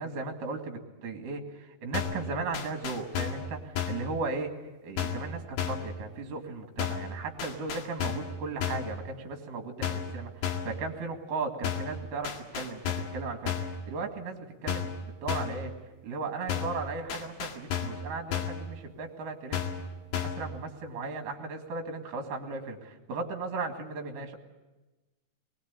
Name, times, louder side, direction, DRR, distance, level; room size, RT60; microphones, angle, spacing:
voice 1, 0.0-4.5 4.8-15.7 16.0-19.9 20.1-24.4, right 4 dB, 60° right, 4 dB, 3.6 m, -36 dB
sound 1, 1.9-2.3 2.5-3.5 3.8-4.1 5.0-5.3 5.6-5.9 6.8-7.1 7.4-8.3 8.6-8.9 9.8-10.1 10.4-10.8 11.6-12.0 12.2-13.2 13.5-13.8 14.7-15.0 15.3-15.6 16.5-16.8 17.1-18.0 18.3-18.6 19.5-19.9 20.1-20.5, left 8 dB, 85° left, 4.0 m, -32 dB
21.0 x 21.0 x 8.4 m, 1.1 s
omnidirectional pair, 4.4 m